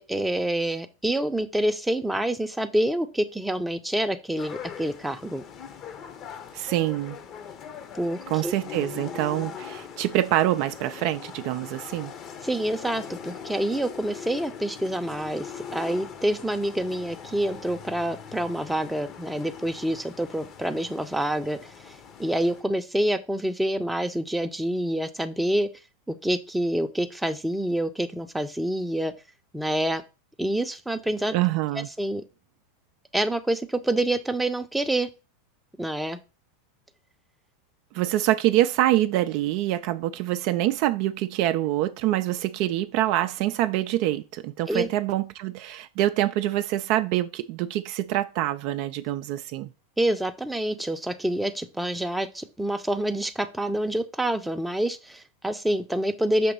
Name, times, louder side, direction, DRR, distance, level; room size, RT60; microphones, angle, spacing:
voice 1, 0.0-5.5 7.9-8.5 12.4-21.9 22.2-25.7 26.1-29.1 29.5-30.0 30.4-31.4 31.7-32.2 33.1-35.1 35.8-36.2 44.7-44.9 50.0-56.5, right 1 dB, 5° right, 0.6 m, -27 dB
sound 1, 4.4-22.6, left 7 dB, 40° left, 0.8 m, -41 dB
voice 2, 6.5-7.2 8.3-12.1 31.3-31.9 37.9-49.7, right 14 dB, 50° right, 0.4 m, -25 dB
6.0 x 3.0 x 5.4 m
figure-of-eight pair, 90°, 0 cm